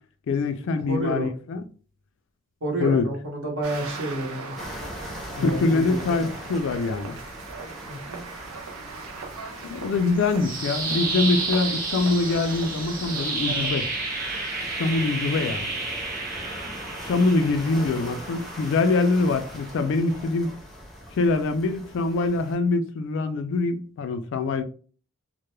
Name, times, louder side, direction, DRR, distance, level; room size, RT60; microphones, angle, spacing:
voice 1, 0.3-1.6 2.8-3.1 5.4-7.2 9.6-13.9 14.8-15.7 17.1-20.5 21.1-24.6, left 3 dB, 60° left, 0.3 m, -24 dB
voice 2, 0.9-1.3 2.6-4.5 5.3-6.2 7.9-8.2 17.8-18.2, right 1 dB, 60° right, 0.9 m, -30 dB
sound 1, 3.6-13.7, right 4 dB, 85° right, 0.5 m, -40 dB
sound 2, 4.6-22.6, equal, ahead, 0.5 m, -41 dB
sound 3, 10.2-20.2, right 3 dB, 45° right, 0.6 m, -32 dB
2.2 x 2.1 x 3.0 m
head